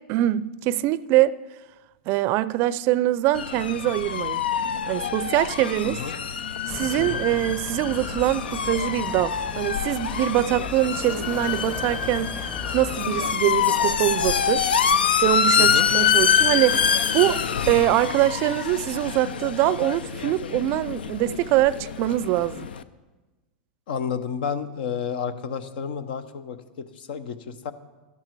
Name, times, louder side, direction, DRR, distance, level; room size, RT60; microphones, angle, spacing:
voice 1, 0.1-1.3 2.1-4.4 4.9-6.0 6.7-14.8 15.2-17.4 17.7-22.7, right 15 dB, 45° right, 0.4 m, -23 dB
sound 1, 3.3-22.8, left 7 dB, 90° left, 0.5 m, -25 dB
voice 2, 5.8-6.1 7.0-7.2 15.6-15.9 23.9-26.6 26.9-27.7, left 7 dB, 70° left, 0.9 m, -30 dB
sound 2, 6.7-13.4, left 3 dB, 25° left, 1.1 m, -38 dB
12.0 x 11.5 x 4.6 m
hypercardioid pair, 115°, 5 cm